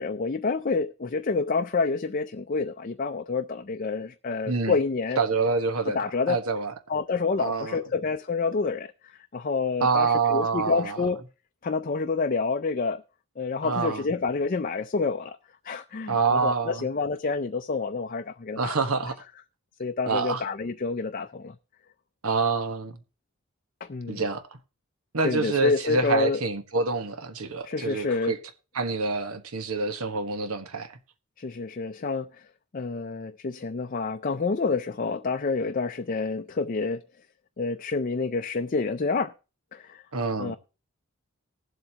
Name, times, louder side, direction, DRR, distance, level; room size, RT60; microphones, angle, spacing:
voice 1, 0.0-5.2 5.9-6.4 6.9-11.2 11.6-13.0 13.4-15.4 15.6-18.7 19.0-19.1 19.8-21.5 23.8-24.2 25.2-26.4 27.6-28.3 31.4-32.4 32.7-37.0 37.6-39.3 39.7-40.0 40.4-40.6, left 4 dB, 40° left, 0.4 m, -28 dB
voice 2, 5.2-6.0 6.3-6.7 7.4-7.8 9.8-11.0 13.6-14.1 16.1-16.8 18.6-19.2 20.1-20.4 22.2-23.0 24.1-24.4 25.1-28.4 28.7-30.9 40.1-40.5, right 4 dB, 85° right, 1.4 m, -26 dB
19.5 x 7.8 x 2.9 m
head